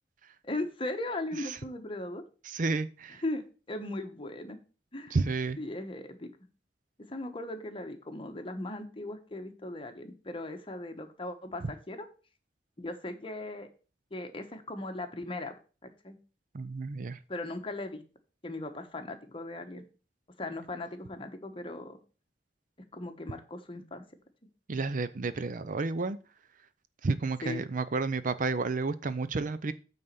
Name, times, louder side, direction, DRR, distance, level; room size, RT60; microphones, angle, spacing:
voice 1, 0.4-2.2 3.2-4.6 4.9-5.2 5.6-6.3 7.1-12.1 12.8-13.7 14.1-15.6 15.8-16.2 17.3-18.0 18.4-19.8 20.4-22.0 22.9-24.1 27.4-27.6, left 2 dB, 30° left, 1.1 m, -38 dB
voice 2, 2.4-3.2 5.1-5.6 11.6-11.7 16.5-17.2 24.7-26.2 27.0-29.7, right 3 dB, 50° right, 0.5 m, -31 dB
8.9 x 4.1 x 6.7 m
head